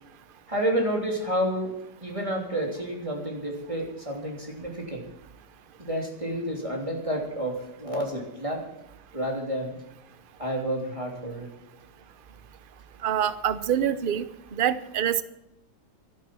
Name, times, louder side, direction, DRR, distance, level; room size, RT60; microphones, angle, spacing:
voice 1, 0.5-1.7 2.0-5.0 5.8-8.6 9.1-9.8 10.4-11.5, equal, 20° right, 0 dB, 3.2 m, -30 dB
voice 2, 13.0-14.3 14.5-15.2, right 9 dB, 45° right, 14 dB, 0.7 m, -25 dB
13.0 x 11.0 x 7.6 m, 0.85 s
omnidirectional pair, 1.9 m